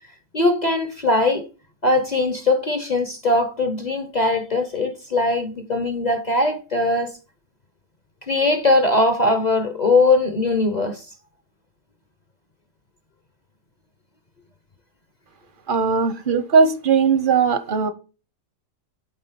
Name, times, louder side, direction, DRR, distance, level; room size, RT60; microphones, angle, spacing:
voice 1, 0.3-1.5 1.8-7.2 8.3-11.0, left 2 dB, 40° left, 0.6 m, -20 dB
voice 2, 15.7-17.9, right 5 dB, 45° right, 0.6 m, -18 dB
9.5 x 3.9 x 5.6 m
omnidirectional pair, 1.9 m